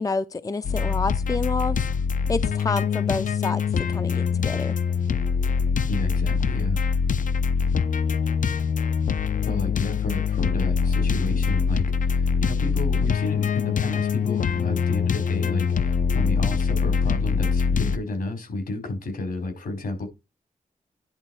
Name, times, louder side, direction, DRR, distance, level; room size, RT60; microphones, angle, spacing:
voice 1, 0.0-1.8 2.3-3.6 3.9-4.7, left 3 dB, 25° left, 0.5 m, -28 dB
sound 1, 0.6-18.0, left 6 dB, 65° left, 0.7 m, -24 dB
voice 2, 5.9-6.8 9.5-20.1, left 2 dB, 80° left, 5.0 m, -31 dB
10.5 x 4.2 x 4.7 m
wide cardioid pair, 100°, 15 cm